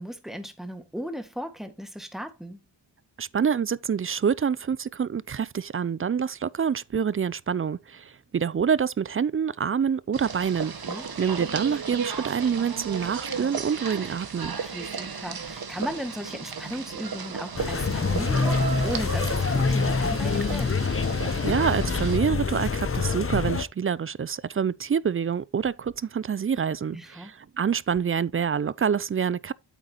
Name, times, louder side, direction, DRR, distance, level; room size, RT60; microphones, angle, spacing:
voice 1, 0.0-2.6 10.9-11.1 14.6-20.8 26.9-27.3, equal, ahead, 1.9 m, -36 dB
voice 2, 3.2-10.7 11.2-14.6 21.4-29.5, right 7 dB, 30° right, 0.4 m, -26 dB
sound 1, 10.1-22.2, right 5 dB, 55° right, 1.8 m, -35 dB
sound 2, 17.6-23.6, left 4 dB, 30° left, 0.9 m, -26 dB
8.7 x 8.3 x 3.0 m
cardioid pair, 70°, 44 cm